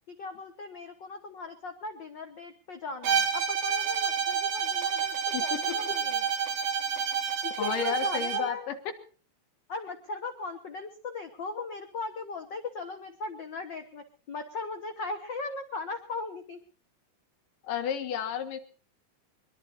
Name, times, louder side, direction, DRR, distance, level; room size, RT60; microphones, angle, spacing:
voice 1, 0.1-6.3 7.4-8.7 9.7-16.6, left 3 dB, 85° left, 7 dB, 1.0 m, -38 dB
Bowed string instrument, 3.0-8.5, right 7 dB, 70° right, 3.1 m, -29 dB
voice 2, 5.3-5.8 7.6-8.8 17.6-18.6, left 8 dB, 70° left, 9 dB, 3.1 m, -32 dB
22.5 x 22.5 x 2.6 m, 0.38 s
omnidirectional pair, 4.1 m